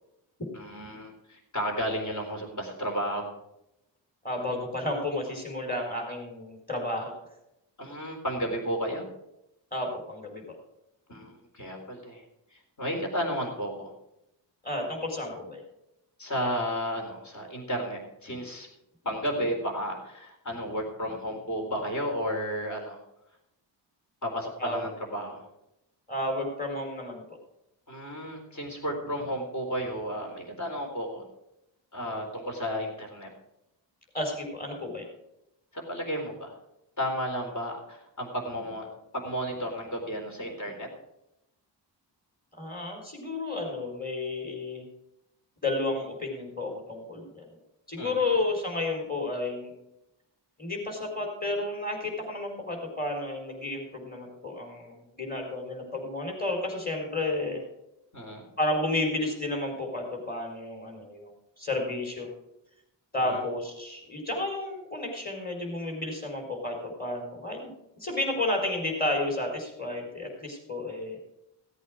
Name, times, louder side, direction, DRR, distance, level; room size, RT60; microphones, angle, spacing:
voice 1, 0.5-3.3 7.8-9.1 11.1-12.2 12.5-13.9 16.2-18.7 19.0-23.0 24.2-25.5 27.9-31.2 31.9-33.3 35.7-36.5 37.0-38.9 39.1-40.9 48.0-48.4 58.1-58.5 63.2-63.4, equal, 40° left, 1 dB, 4.0 m, -33 dB
voice 2, 4.2-7.2 9.7-10.6 14.6-15.6 24.6-24.8 26.1-27.2 34.1-35.1 42.6-44.8 45.6-47.5 47.9-49.7 50.6-57.6 58.6-61.3 61.6-62.3 63.1-67.7 68.0-71.2, left 2 dB, 20° left, 2 dB, 4.2 m, -32 dB
16.0 x 8.4 x 4.9 m, 0.85 s
wide cardioid pair, 120°, 44 cm